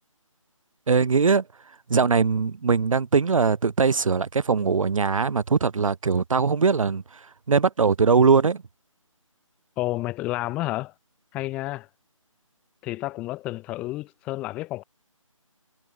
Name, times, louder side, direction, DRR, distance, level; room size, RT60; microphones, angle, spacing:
voice 1, 0.9-1.4 1.9-7.0 7.5-8.6, right 5 dB, 75° right, 0.5 m, -21 dB
voice 2, 9.8-10.9 11.3-11.9 12.8-14.8, left 18 dB, 5° left, 0.7 m, -30 dB
figure-of-eight pair, 155°, 17 cm